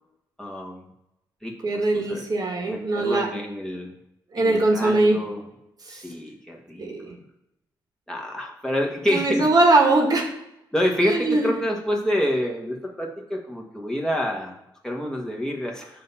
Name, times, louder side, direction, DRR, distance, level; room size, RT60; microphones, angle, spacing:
voice 1, 0.4-0.9 1.4-2.2 2.7-3.9 4.4-5.5 5.9-7.1 8.1-9.5 10.7-16.0, equal, 5° left, -1 dB, 1.3 m, -28 dB
voice 2, 1.6-3.3 4.3-5.2 5.9-6.0 6.8-7.1 9.1-10.3 11.0-11.5, right 2 dB, 50° right, 2 dB, 1.2 m, -21 dB
7.6 x 2.8 x 5.5 m, 0.85 s
cardioid pair, 70°, 9 cm